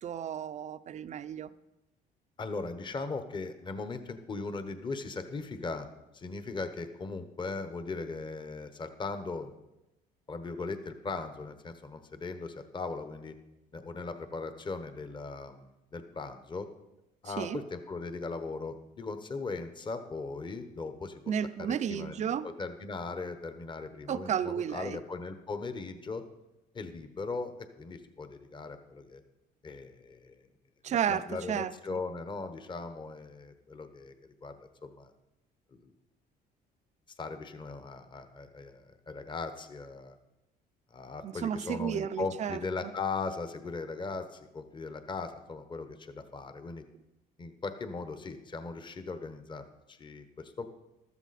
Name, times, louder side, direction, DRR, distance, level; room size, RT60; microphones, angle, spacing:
voice 1, 0.0-1.5 17.3-17.6 21.3-22.5 24.1-25.0 30.8-32.0 41.2-42.9, right 8 dB, 45° right, 0.6 m, -33 dB
voice 2, 2.4-5.9 6.1-9.5 10.3-13.3 13.7-16.7 17.2-21.2 21.6-22.1 22.4-26.2 26.7-29.2 29.6-30.4 30.9-34.6 34.8-35.1 35.7-35.9 37.2-40.2 40.9-46.8 47.4-50.6, left 3 dB, 30° left, 1.1 m, -38 dB
14.5 x 13.0 x 4.2 m
cardioid pair, 110°, 17 cm